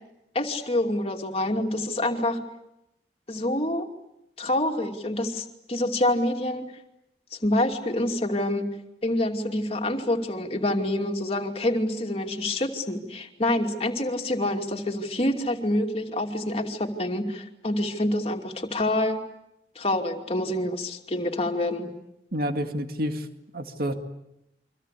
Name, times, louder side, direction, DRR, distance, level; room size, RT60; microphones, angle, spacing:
voice 1, 0.3-2.4 3.3-3.9 4.4-6.7 7.3-8.7 9.0-19.2 19.8-21.9, left 1 dB, 35° left, 3 dB, 2.7 m, -27 dB
voice 2, 22.3-23.3 23.5-23.9, equal, 55° right, 6 dB, 2.1 m, -28 dB
29.0 x 24.5 x 8.4 m, 0.86 s
head